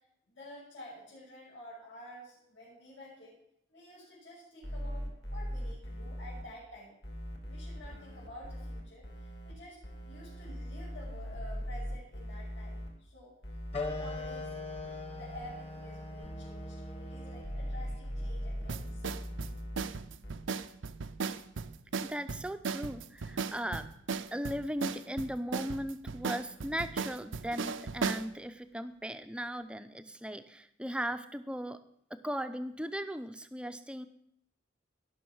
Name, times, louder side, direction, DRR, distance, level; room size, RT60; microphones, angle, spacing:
voice 1, 0.3-3.4 3.7-6.9 7.4-13.3 13.7-14.5 15.1-19.2, left 1 dB, 80° left, -10 dB, 6.5 m, -50 dB
sound 1, 4.6-6.4 7.0-9.5 9.8-12.9 13.4-19.8 20.2-20.3, equal, 60° left, 2.6 m, -40 dB
sound 2, 13.7-18.8, left 3 dB, 30° left, 1.3 m, -42 dB
sound 3, 18.7-28.3, right 5 dB, 80° right, 0.6 m, -36 dB
voice 2, 22.0-23.9 24.3-31.8 32.1-34.1, equal, 5° right, 10 dB, 0.5 m, -37 dB
17.0 x 6.4 x 6.3 m, 0.74 s
head